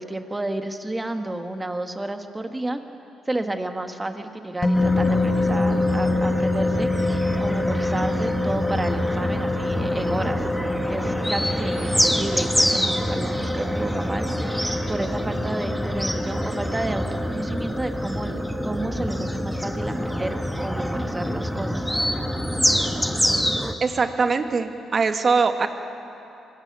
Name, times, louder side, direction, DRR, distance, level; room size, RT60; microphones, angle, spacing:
voice 1, 0.0-2.8 3.3-10.4 10.9-14.6 14.9-21.9, right 2 dB, 15° right, 6 dB, 1.7 m, -31 dB
sound 1, 4.6-24.0, left 2 dB, 20° left, 4.3 m, -28 dB
sound 2, 4.7-23.7, equal, ahead, 1.4 m, -26 dB
voice 2, 23.8-25.7, right 4 dB, 40° right, 6 dB, 1.7 m, -22 dB
25.5 x 21.5 x 6.9 m, 2.9 s
cardioid pair, 90°, 0 cm